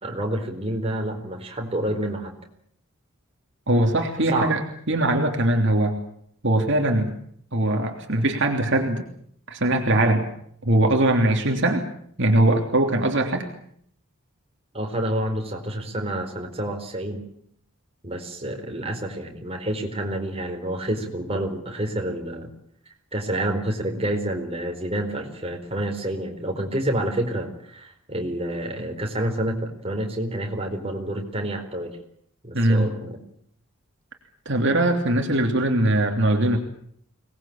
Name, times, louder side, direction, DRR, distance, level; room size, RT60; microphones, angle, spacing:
voice 1, 0.0-2.4 4.3-4.5 14.7-17.2 18.0-22.5 22.9-32.0 32.4-33.2, right 1 dB, 30° right, 2 dB, 4.4 m, -28 dB
voice 2, 3.7-4.6 4.9-5.9 6.4-7.1 7.5-9.1 9.5-10.3 10.7-11.9 12.2-13.5 32.5-32.9 34.4-36.6, right 1 dB, 60° right, 3 dB, 3.1 m, -21 dB
25.0 x 19.5 x 8.8 m, 0.67 s
head